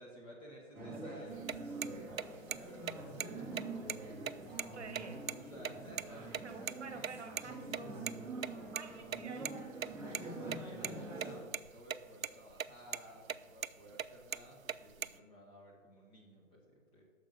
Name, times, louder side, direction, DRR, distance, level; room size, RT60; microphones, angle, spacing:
voice 1, 0.0-4.6 5.5-7.2 8.9-9.0 10.0-17.0, equal, 10° left, -2 dB, 1.5 m, -55 dB
sound 1, 0.7-11.4, right 2 dB, 5° right, 1.3 m, -45 dB
sound 2, 1.3-6.4 6.7-6.8 7.0-7.1 7.4-7.5 7.7-7.8 8.1-8.2 8.4-9.5 9.8-10.2 10.5-11.3 11.5-12.0 12.2-12.7 12.9-13.0 13.3-13.7 14.0-15.2, right 8 dB, 85° right, 0.5 m, -38 dB
voice 2, 4.7-5.2 6.4-7.6 8.7-9.7, right 4 dB, 55° right, 7 dB, 1.3 m, -48 dB
8.8 x 6.7 x 5.3 m, 1.5 s
figure-of-eight pair, 135°, 40 cm